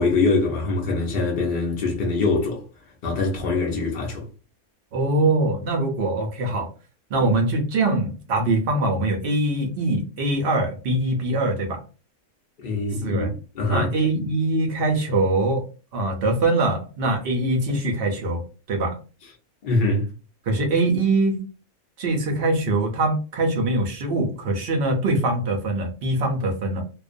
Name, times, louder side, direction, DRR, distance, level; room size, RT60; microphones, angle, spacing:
voice 1, 0.0-2.6 3.0-4.3 12.6-13.3 13.6-13.9 19.6-20.1, left 3 dB, 60° left, 0.5 m, -23 dB
voice 2, 4.9-6.7 7.1-11.8 13.0-13.3 13.7-15.6 15.9-18.4 18.7-19.0 20.5-21.5 22.0-26.8, right 2 dB, 65° right, 0.6 m, -23 dB
2.4 x 2.1 x 2.4 m
omnidirectional pair, 1.5 m